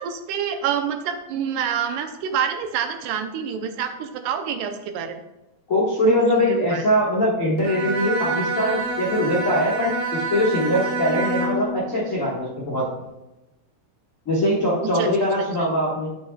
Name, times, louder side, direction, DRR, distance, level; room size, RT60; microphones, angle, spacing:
voice 1, 0.0-5.2 6.0-6.9 14.8-15.3, right 7 dB, 85° right, 7 dB, 2.2 m, -27 dB
voice 2, 5.7-12.8 14.2-16.1, left 1 dB, 45° left, -7 dB, 1.0 m, -22 dB
Bowed string instrument, 7.6-11.8, right 3 dB, 65° right, 2.2 m, -27 dB
11.5 x 5.9 x 2.3 m, 0.98 s
omnidirectional pair, 3.7 m